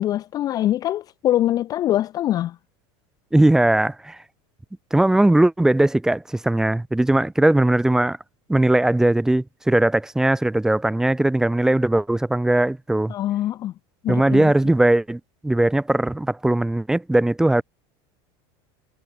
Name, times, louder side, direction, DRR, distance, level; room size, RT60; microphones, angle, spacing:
voice 1, 0.0-2.6 13.1-13.7 14.0-14.5, left 13 dB, 25° left, 0.5 m, -23 dB
voice 2, 3.3-4.2 4.9-8.2 8.5-13.1 14.1-17.6, right 1 dB, 5° right, 0.9 m, -19 dB
supercardioid pair, 160°, 14 cm